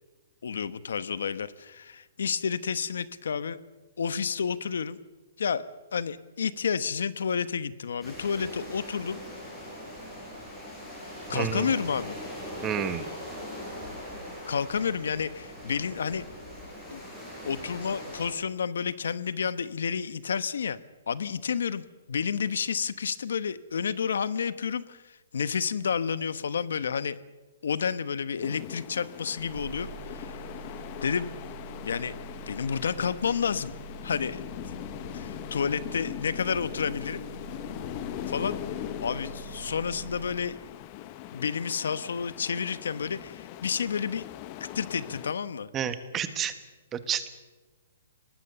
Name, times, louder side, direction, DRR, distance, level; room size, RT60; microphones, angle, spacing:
voice 1, 0.4-3.6 4.0-5.0 5.4-5.6 5.9-9.2 11.3-12.1 14.5-16.2 16.9-17.0 17.4-20.8 21.1-27.2 27.6-30.4 31.0-31.3 31.8-32.2 32.5-33.7 34.0-34.8 35.1-37.2 38.3-38.6 39.0-40.6 41.3-44.2 44.6-45.7, left 6 dB, 80° left, 15 dB, 1.1 m, -30 dB
sound 1, 8.0-18.3, left 1 dB, 10° left, 7.3 m, -41 dB
voice 2, 11.3-11.7 12.6-13.1 45.7-46.5 46.9-47.3, right 8 dB, 15° right, 11 dB, 1.2 m, -30 dB
sound 2, 28.4-45.3, left 13 dB, 30° left, 0.8 m, -41 dB
sound 3, 29.4-41.0, right 5 dB, 80° right, 6.5 m, -45 dB
23.0 x 19.5 x 6.9 m, 1.2 s
hypercardioid pair, 160°, 0 cm